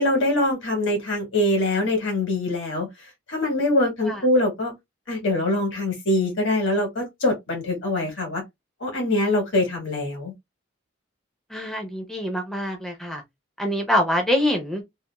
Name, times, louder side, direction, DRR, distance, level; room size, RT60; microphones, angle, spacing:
voice 1, 0.0-2.9 3.3-4.7 5.1-8.4 8.8-10.3, left 1 dB, 70° left, 1.5 m, -23 dB
voice 2, 11.5-13.2 13.6-14.8, left 1 dB, ahead, 0.4 m, -25 dB
2.9 x 2.4 x 2.2 m
head